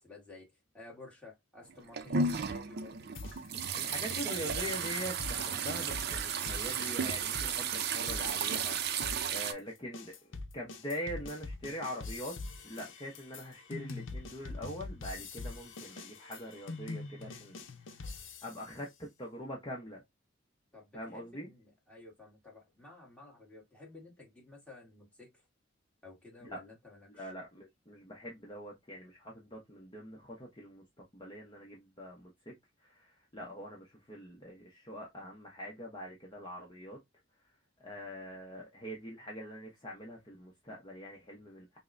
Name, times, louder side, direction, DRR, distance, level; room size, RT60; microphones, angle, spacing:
voice 1, 0.0-3.1 20.7-25.5 26.0-27.3, left 3 dB, 5° left, 1.4 m, -53 dB
sound 1, 1.7-9.5, right 6 dB, 55° right, 0.5 m, -34 dB
sound 2, 3.2-8.7 9.0-18.8, left 3 dB, 75° left, 0.7 m, -44 dB
voice 2, 3.7-10.1 10.5-12.4 12.6-20.0 20.9-21.5 26.4-26.6 27.1-30.8 31.1-32.5 32.8-37.0 37.4-37.5 37.8-41.8, equal, 25° left, 0.8 m, -43 dB
5.3 x 2.1 x 2.5 m
head